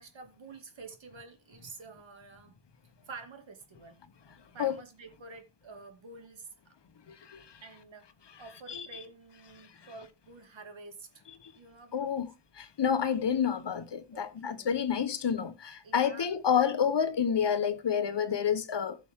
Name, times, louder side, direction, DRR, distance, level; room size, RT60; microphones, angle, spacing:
voice 1, 0.0-2.6 3.1-4.0 4.5-6.7 7.6-8.1 8.4-11.2 11.5-12.2 14.1-14.8 15.8-16.3, right 4 dB, 70° right, 2.4 m, -49 dB
voice 2, 7.1-7.5 8.7-8.9 11.4-11.5 11.9-12.3 12.6-19.0, left 7 dB, 60° left, 1.2 m, -29 dB
15.5 x 6.2 x 3.7 m
wide cardioid pair, 90°, 47 cm